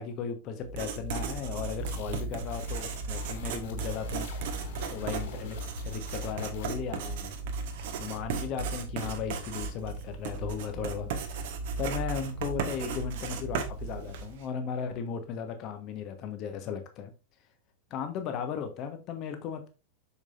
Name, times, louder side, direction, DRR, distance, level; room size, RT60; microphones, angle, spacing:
voice 1, 0.0-7.3 8.0-11.5 11.8-17.1 17.9-19.7, left 7 dB, 40° left, 1.2 m, -36 dB
Writing, 0.6-14.4, right 4 dB, 50° right, 1.3 m, -35 dB
sound 1, 1.8-6.9, left 5 dB, 55° left, 3.4 m, -46 dB
7.0 x 6.6 x 2.5 m
figure-of-eight pair, 90°, 0 cm